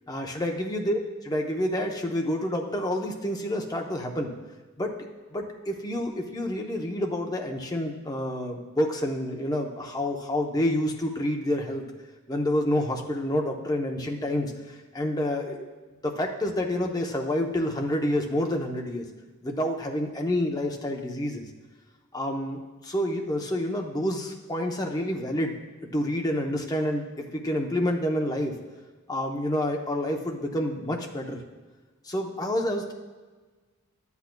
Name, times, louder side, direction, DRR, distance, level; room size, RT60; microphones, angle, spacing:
voice 1, 0.1-4.3 4.8-4.9 5.3-11.8 12.3-15.6 16.0-19.1 19.4-21.4 22.1-25.5 25.9-28.5 29.1-31.4 32.1-32.9, left 1 dB, 15° left, 1 dB, 0.7 m, -28 dB
11.5 x 8.2 x 2.2 m, 1.3 s
head